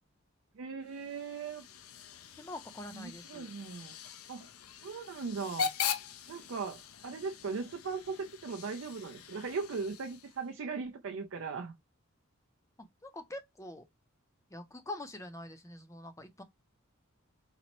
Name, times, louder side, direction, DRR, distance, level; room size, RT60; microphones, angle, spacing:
voice 1, 0.5-1.6 2.9-3.9 4.3-4.5 4.8-5.7 6.3-11.7, right 5 dB, 65° right, 0.4 m, -38 dB
Hiss / Train / Alarm, 0.9-10.5, left 7 dB, 90° left, 0.5 m, -41 dB
voice 2, 2.4-3.5 12.8-13.8 14.5-16.4, left 1 dB, 15° left, 0.5 m, -45 dB
4.0 x 2.0 x 2.9 m
head